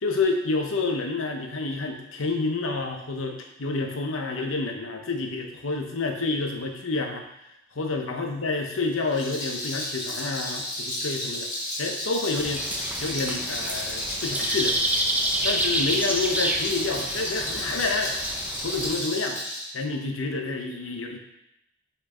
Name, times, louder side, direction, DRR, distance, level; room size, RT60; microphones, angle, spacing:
voice 1, 0.0-7.3 7.8-11.5 11.8-12.7 13.0-14.8 15.4-18.1 18.6-19.4 19.7-21.2, left 3 dB, 85° left, 3 dB, 0.9 m, -28 dB
Rattle, 9.0-19.7, left 1 dB, 40° left, 2.3 m, -32 dB
sound 1, 12.3-19.0, right 1 dB, 10° right, 0.5 m, -29 dB
5.4 x 4.6 x 4.3 m, 0.84 s
head